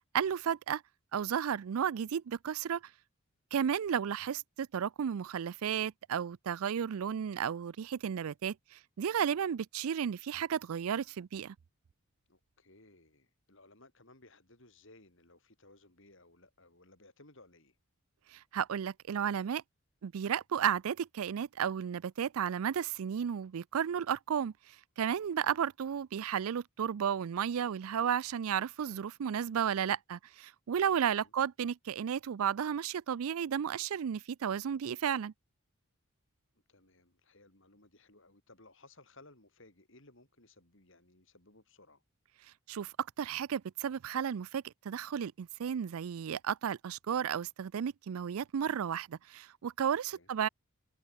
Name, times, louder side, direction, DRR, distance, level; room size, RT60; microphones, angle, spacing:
voice 1, 0.1-0.8 1.1-2.8 3.5-11.5 18.3-19.6 20.0-24.5 25.0-35.3 42.7-50.5, right 8 dB, 75° right, 0.4 m, -33 dB
voice 2, 12.3-17.8 25.4-25.6 31.0-31.3 36.7-42.0 50.1-50.3, left 2 dB, 60° left, 5.3 m, -60 dB
head